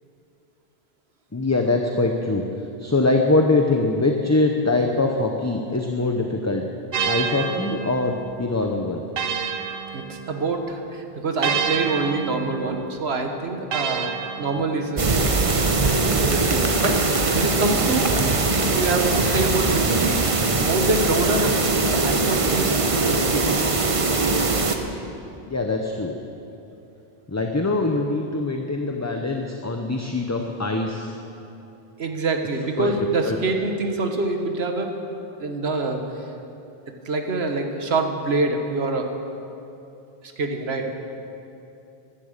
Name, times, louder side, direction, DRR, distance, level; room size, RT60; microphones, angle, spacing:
voice 1, 1.3-2.4 2.8-6.7 7.0-9.0 25.5-26.2 27.3-31.1 32.8-32.9 33.3-33.4, left 2 dB, 20° left, 2 dB, 0.7 m, -23 dB
sound 1, 6.9-10.6 11.4-15.1, right 6 dB, 70° right, 1.0 m, -29 dB
voice 2, 9.9-15.0 16.3-18.1 18.7-20.2 20.6-21.5 21.9-23.6 32.0-34.9 35.4-36.0 37.0-39.1 40.4-40.9, right 3 dB, 85° right, 4 dB, 1.5 m, -25 dB
sound 2, 15.0-24.8, right 3 dB, 35° right, 0.9 m, -21 dB
15.0 x 11.0 x 6.6 m, 2.8 s
omnidirectional pair, 1.0 m